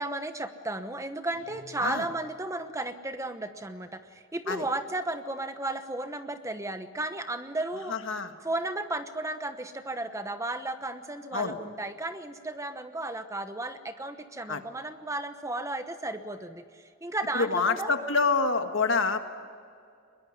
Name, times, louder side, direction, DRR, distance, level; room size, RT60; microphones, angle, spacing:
voice 1, 0.0-7.9 8.4-17.9, right 2 dB, 15° right, 9 dB, 1.0 m, -34 dB
Guitar, 1.3-2.5, right 2 dB, 85° right, 3.5 m, -54 dB
voice 2, 7.9-8.3 11.3-11.5 14.5-14.6 17.3-19.2, left 4 dB, 60° left, 7 dB, 1.7 m, -26 dB
22.5 x 22.0 x 9.8 m, 2.3 s
head